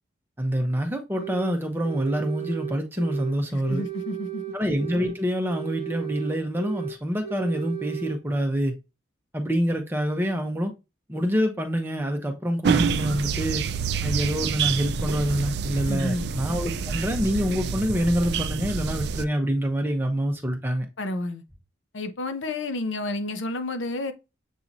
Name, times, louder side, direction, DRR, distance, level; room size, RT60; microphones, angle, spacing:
voice 1, 0.4-3.9 4.5-8.7 9.3-10.7 11.1-13.7 14.0-20.9, equal, 10° right, 0.8 m, -26 dB
sound 1, 1.2-1.6 1.8-3.3 3.6-5.2 5.4-7.0 7.2-8.2, right 12 dB, 55° left, 1.3 m, -35 dB
voice 2, 3.5-4.4 15.9-16.3 21.0-21.4 21.9-24.1, left 2 dB, 90° left, 0.7 m, -30 dB
sound 2, 12.6-19.2, right 6 dB, 60° right, 0.3 m, -27 dB
7.2 x 2.8 x 2.6 m
head